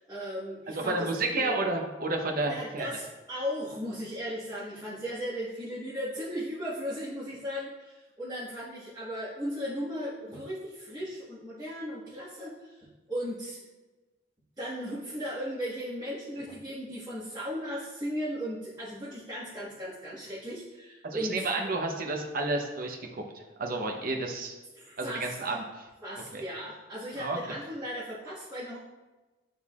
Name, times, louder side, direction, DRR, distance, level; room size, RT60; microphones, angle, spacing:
voice 1, 0.0-1.1 1.3-1.6 2.5-13.6 14.6-21.5 24.7-25.6 26.0-28.8, equal, 20° right, -13 dB, 1.6 m, -36 dB
voice 2, 0.7-2.9 21.0-24.5 25.0-25.9 26.3-26.4 27.2-27.4, right 2 dB, 50° right, 2 dB, 0.8 m, -31 dB
10.0 x 3.9 x 2.4 m, 1.2 s
head